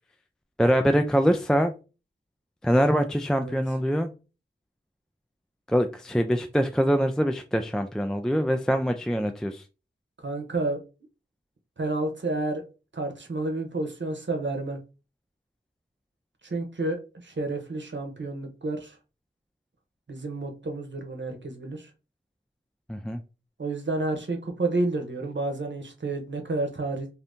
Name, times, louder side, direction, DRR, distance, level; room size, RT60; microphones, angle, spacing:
voice 1, 0.6-1.7 2.6-4.1 5.7-9.6 22.9-23.2, equal, 5° left, 0.3 m, -24 dB
voice 2, 10.2-10.8 11.8-12.7 12.9-14.8 16.4-19.0 20.1-21.9 23.6-27.1, right 2 dB, 60° right, 0.9 m, -30 dB
2.7 x 2.6 x 3.4 m
wide cardioid pair, 45°, 21 cm